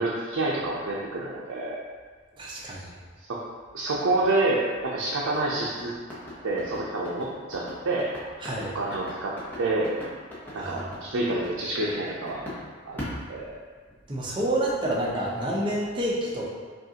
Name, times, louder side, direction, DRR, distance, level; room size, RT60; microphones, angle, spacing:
voice 1, 0.0-1.8 3.3-3.4 3.7-5.9 6.4-8.1 8.7-9.9 10.5-12.4 12.9-13.6, right 2 dB, 70° right, -5 dB, 0.5 m, -28 dB
voice 2, 2.4-2.9 8.4-8.7 10.6-10.7 14.1-16.5, right 1 dB, 20° right, -5 dB, 0.6 m, -28 dB
sound 1, 5.3-12.6 13.0-14.0, left 1 dB, 10° left, 0.8 m, -39 dB
5.2 x 2.4 x 2.8 m, 1.5 s
head